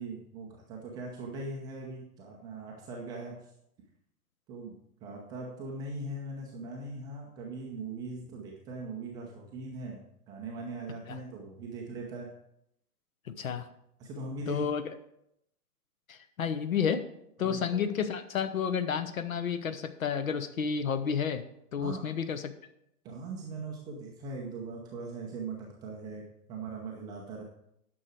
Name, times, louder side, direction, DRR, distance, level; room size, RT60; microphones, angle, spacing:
voice 1, 0.0-3.4 4.5-4.7 5.0-12.3 14.0-14.6 17.4-17.8 21.8-22.0 23.0-27.4, right 3 dB, 10° right, -2 dB, 0.5 m, -40 dB
voice 2, 13.3-13.7 14.5-14.8 16.1-17.0 17.4-21.4 21.7-22.5, left 7 dB, 60° left, 11 dB, 0.9 m, -31 dB
9.8 x 6.2 x 4.9 m, 0.78 s
figure-of-eight pair, 115°, 47 cm